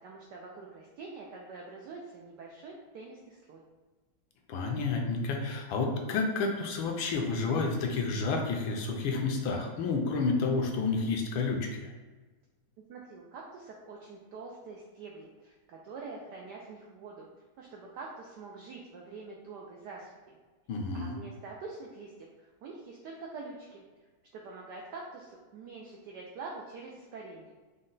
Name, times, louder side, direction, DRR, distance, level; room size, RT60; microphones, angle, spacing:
voice 1, 0.0-3.6 12.9-17.3 17.6-20.4 20.9-22.1 22.4-23.8 24.3-27.6, right 3 dB, 90° right, -1 dB, 0.9 m, -45 dB
voice 2, 4.5-11.9 20.7-21.2, left 4 dB, 75° left, 2 dB, 1.3 m, -30 dB
5.2 x 2.2 x 3.8 m, 1.3 s
omnidirectional pair, 2.4 m